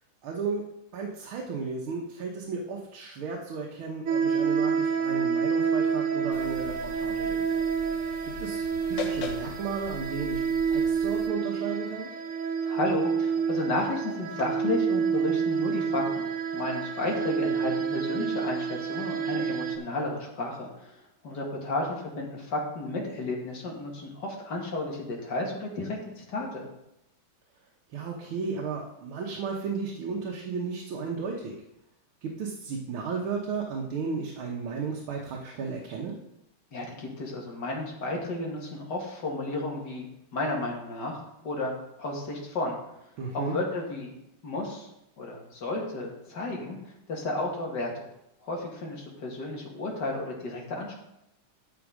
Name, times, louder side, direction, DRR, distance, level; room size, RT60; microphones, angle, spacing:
voice 1, 0.2-0.6 0.9-7.5 8.4-10.4 10.7-12.1 27.9-31.5 32.2-36.2 43.2-43.6, right 5 dB, 80° right, -1 dB, 2.0 m, -34 dB
sound 1, 4.1-19.8, right 6 dB, 50° right, 1.0 m, -28 dB
sound 2, 6.3-11.3, left 5 dB, 75° left, 1.9 m, -41 dB
voice 2, 12.6-26.7 36.7-41.7 42.0-42.8 43.3-44.2 44.4-44.9 45.2-48.0 48.4-50.9, left 2 dB, 55° left, -1 dB, 2.5 m, -33 dB
11.0 x 6.2 x 5.0 m, 0.84 s
omnidirectional pair, 2.3 m